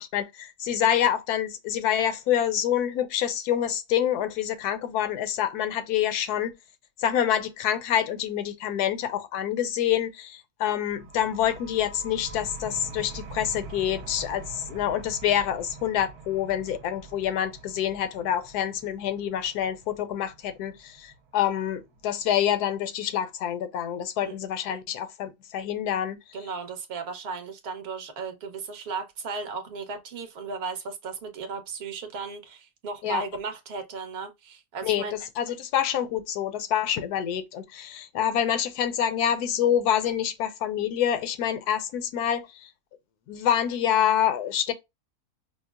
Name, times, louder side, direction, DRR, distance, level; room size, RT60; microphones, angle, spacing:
voice 1, 0.1-6.5 7.0-26.2 33.0-33.2 34.8-42.7 43.3-44.7, left 10 dB, 80° left, 1.1 m, -27 dB
sound 1, 10.9-22.3, right 4 dB, 80° right, 1.1 m, -44 dB
voice 2, 26.3-35.1, right 4 dB, 50° right, 0.8 m, -35 dB
5.1 x 2.0 x 2.2 m
omnidirectional pair, 1.7 m